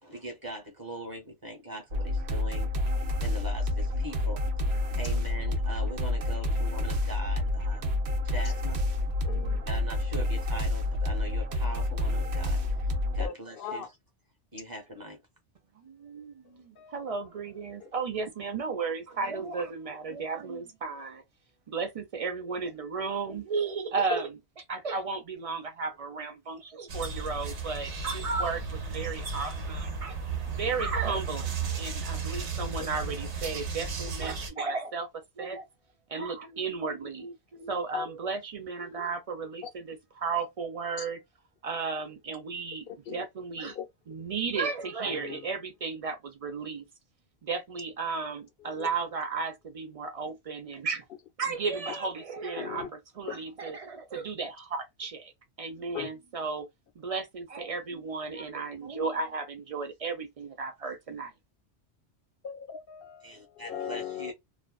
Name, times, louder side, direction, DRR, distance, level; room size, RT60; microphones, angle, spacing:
voice 1, 0.0-2.7 3.2-4.4 5.0-7.9 8.2-8.8 9.6-12.6 13.1-13.9 14.5-15.2 63.2-64.3, right 1 dB, 20° right, 0.9 m, -41 dB
sound 1, 1.9-13.3, left 2 dB, 65° right, 0.9 m, -29 dB
voice 2, 9.2-9.7 13.2-13.9 16.8-17.2 17.8-17.9 32.8-32.9 37.9-38.1 39.6-39.7 41.0-41.1 42.9-43.2 43.7-43.9 45.1-45.5 48.6-48.9 51.9-52.0 52.6-52.9 55.9-56.1 62.4-64.3, left 8 dB, 65° left, 0.7 m, -39 dB
voice 3, 15.8-21.2 21.7-30.1 30.5-35.1 35.4-35.7 36.1-41.2 41.6-42.9 43.1-43.8 44.1-46.8 47.4-51.0 51.4-52.9 53.2-55.3 55.6-56.7 57.0-61.3, right 4 dB, 45° right, 0.5 m, -34 dB
sound 2, 26.9-34.5, right 4 dB, 85° right, 1.1 m, -34 dB
2.4 x 2.3 x 2.2 m
omnidirectional pair, 1.2 m